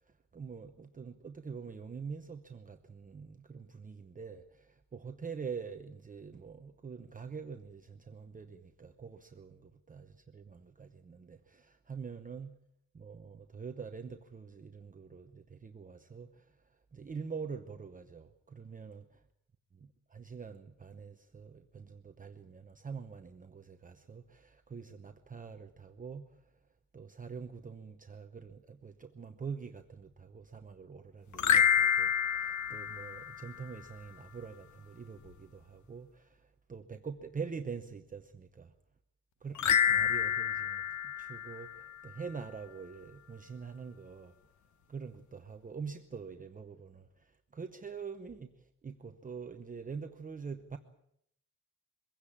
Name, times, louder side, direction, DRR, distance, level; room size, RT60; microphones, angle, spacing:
voice 1, 0.3-12.6 12.9-16.4 16.9-19.1 19.8-26.4 26.9-38.7 39.4-39.6 39.9-44.3 44.9-48.5 48.8-50.8, right 5 dB, 25° right, 0.9 m, -45 dB
sound 1, 31.3-33.8 39.6-42.2, left 8 dB, 60° left, 1.0 m, -29 dB
23.0 x 16.5 x 8.6 m
wide cardioid pair, 175°, 33 cm